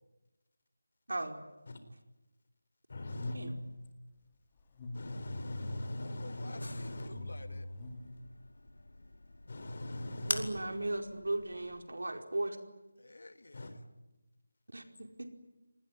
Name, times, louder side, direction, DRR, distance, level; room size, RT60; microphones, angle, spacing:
voice 1, 1.1-1.4 3.3-3.5 10.3-12.6 14.7-15.3, right 2 dB, 90° right, 4 dB, 4.8 m, -37 dB
voice 2, 2.9-3.4 4.9-7.1 9.5-10.5 13.5-13.7, left 1 dB, 40° left, 9 dB, 4.1 m, -41 dB
sound 1, 2.9-3.8 4.6-5.9 6.9-8.2, left 2 dB, 15° left, 2.0 m, -43 dB
voice 3, 6.0-7.7 13.0-13.8, left 2 dB, 65° left, 9 dB, 2.5 m, -51 dB
sound 2, 6.6-11.9, left 2 dB, 90° left, 4.5 m, -44 dB
28.0 x 20.0 x 10.0 m, 1.0 s
figure-of-eight pair, 175°, 0 cm